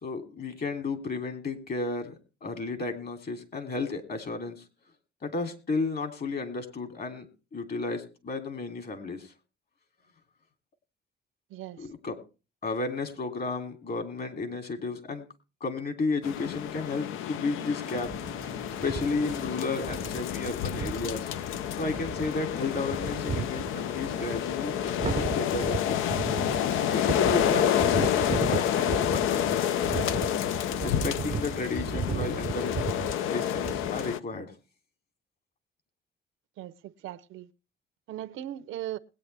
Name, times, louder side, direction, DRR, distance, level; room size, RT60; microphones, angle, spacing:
voice 1, 0.0-2.1 2.4-4.6 5.2-7.3 7.5-9.3 11.8-12.2 12.6-15.2 15.6-18.1 18.8-21.3 21.8-26.0 26.9-30.0 30.8-34.5, left 3 dB, 50° left, 3.0 m, -33 dB
sound 1, 16.2-34.2, left 10 dB, 90° left, 0.6 m, -29 dB
sound 2, 18.0-34.2, right 7 dB, 35° right, 0.5 m, -36 dB
voice 2, 36.6-37.5 38.1-39.0, right 13 dB, 85° right, 0.8 m, -38 dB
21.0 x 9.0 x 3.4 m
cardioid pair, 90°, 20 cm